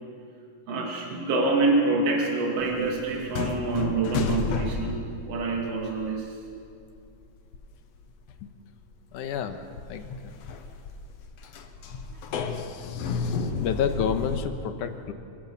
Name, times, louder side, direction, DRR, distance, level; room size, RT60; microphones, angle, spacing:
voice 1, 0.7-6.4 12.1-12.2, right 3 dB, 50° right, 0 dB, 3.4 m, -26 dB
sound 1, 2.6-6.4 6.7-7.8 8.0-8.1 8.7-14.4, left 5 dB, 60° left, 2.0 m, -32 dB
voice 2, 9.1-9.6 9.9-10.4 12.3-15.1, left 7 dB, 75° left, 8 dB, 2.6 m, -31 dB
25.5 x 15.5 x 7.1 m, 2.5 s
omnidirectional pair, 3.7 m